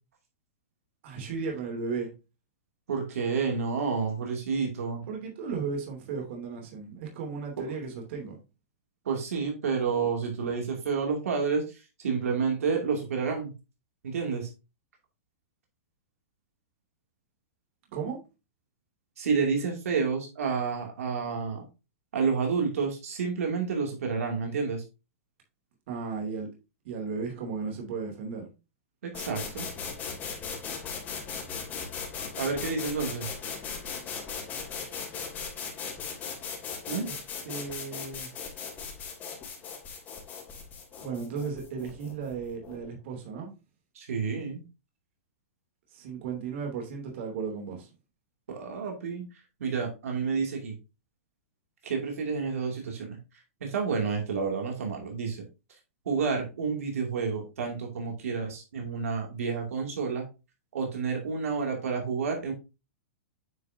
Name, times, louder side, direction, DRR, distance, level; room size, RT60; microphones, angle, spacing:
voice 1, 1.0-2.1 5.0-8.4 17.9-18.2 25.9-26.5 26.8-28.5 37.1-38.3 41.0-43.5 45.9-47.9, right 5 dB, 55° right, 2.7 m, -35 dB
voice 2, 2.9-5.0 7.6-7.7 9.1-11.6 12.0-13.5 14.0-14.5 19.2-21.7 22.1-24.8 29.1-29.7 32.4-33.3 36.9-37.1 44.0-44.6 48.5-49.3 49.6-50.8 51.8-53.2 53.6-55.4 56.1-60.2 60.7-62.5, right 5 dB, 80° right, 2.5 m, -29 dB
sound 1, 29.1-42.9, left 6 dB, 25° left, 3.0 m, -38 dB
9.2 x 6.0 x 2.7 m
hypercardioid pair, 145°, 8 cm